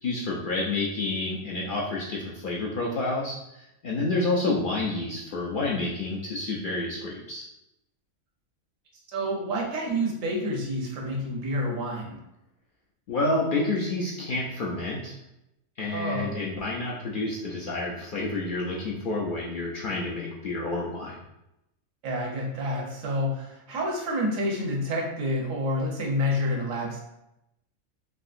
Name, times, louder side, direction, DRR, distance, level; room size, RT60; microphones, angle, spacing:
voice 1, 0.0-7.4 13.1-15.2 15.8-21.2, left 2 dB, 70° left, -4 dB, 0.4 m, -29 dB
voice 2, 9.1-12.2 15.9-16.4 22.0-27.0, equal, 80° right, -1 dB, 1.2 m, -28 dB
3.5 x 2.7 x 2.4 m, 0.87 s
omnidirectional pair, 1.4 m